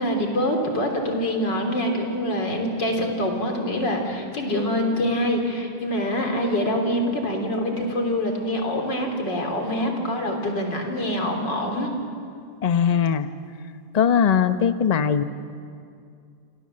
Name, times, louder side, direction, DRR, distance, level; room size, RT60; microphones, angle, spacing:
voice 1, 0.0-11.9, equal, 75° left, 2 dB, 4.1 m, -25 dB
voice 2, 12.6-13.3 13.9-15.2, left 7 dB, 40° left, 10 dB, 0.5 m, -20 dB
28.0 x 25.5 x 7.6 m, 2.4 s
omnidirectional pair, 2.0 m